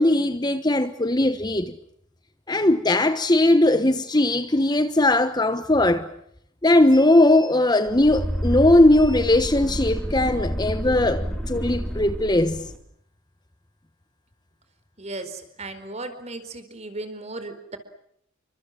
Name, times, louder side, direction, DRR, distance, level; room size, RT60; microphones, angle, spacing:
voice 1, 0.0-1.7 2.5-6.1 6.6-12.7, left 1 dB, 20° left, 1.2 m, -19 dB
sound 1, 7.9-12.8, equal, ahead, 4.2 m, -29 dB
voice 2, 15.0-17.8, right 2 dB, 30° right, 4.5 m, -36 dB
29.5 x 25.0 x 7.7 m
head